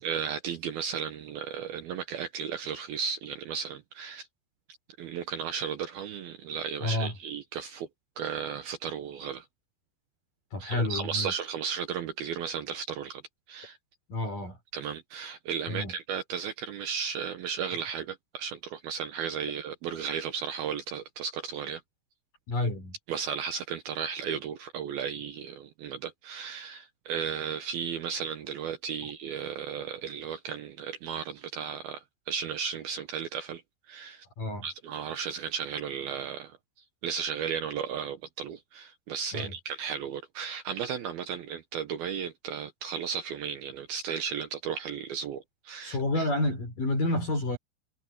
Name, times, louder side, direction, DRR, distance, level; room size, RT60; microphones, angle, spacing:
voice 1, 0.0-4.3 5.0-7.9 8.2-9.5 10.6-13.2 13.5-13.8 14.7-21.8 23.1-33.6 33.9-34.3 34.6-36.6 37.0-46.3, right 7 dB, 80° right, 2.2 m, -35 dB
voice 2, 6.8-7.1 10.5-11.3 14.1-14.6 15.7-15.9 22.5-22.9 34.4-34.7 39.3-39.5 45.8-47.6, left 2 dB, 45° left, 5.9 m, -29 dB
omnidirectional pair, 5.9 m